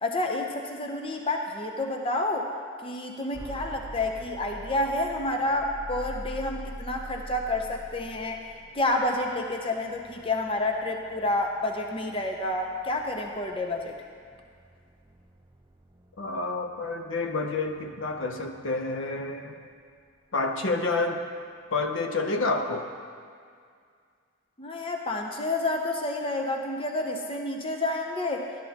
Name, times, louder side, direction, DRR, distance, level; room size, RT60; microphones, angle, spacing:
voice 1, 0.0-2.5 2.8-8.4 8.7-13.9 24.6-28.5, left 2 dB, 25° left, 2 dB, 0.6 m, -29 dB
sound 1, 3.3-19.3, right 1 dB, 15° right, 0.6 m, -45 dB
voice 2, 16.2-19.6 20.3-21.2 21.7-22.9, left 3 dB, 60° left, 5 dB, 0.7 m, -29 dB
13.0 x 12.0 x 2.9 m, 2.2 s
head